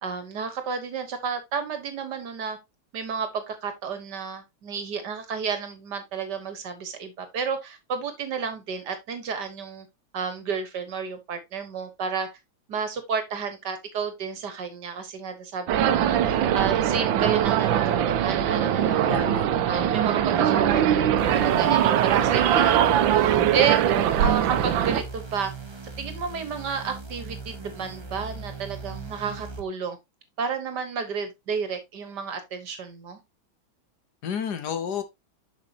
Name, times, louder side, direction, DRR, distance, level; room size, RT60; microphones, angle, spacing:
voice 1, 0.0-2.6 2.9-9.9 10.1-12.3 12.7-19.3 19.7-23.8 24.2-25.5 26.0-30.0 30.4-33.2, right 6 dB, 60° right, 1.8 m, -31 dB
sound 1, 15.7-25.0, right 10 dB, 80° right, 1.4 m, -21 dB
voice 2, 19.1-19.6 34.2-35.0, left 8 dB, 60° left, 1.3 m, -31 dB
sound 2, 21.2-29.6, right 4 dB, 25° right, 0.6 m, -39 dB
7.4 x 5.9 x 2.8 m
omnidirectional pair, 2.1 m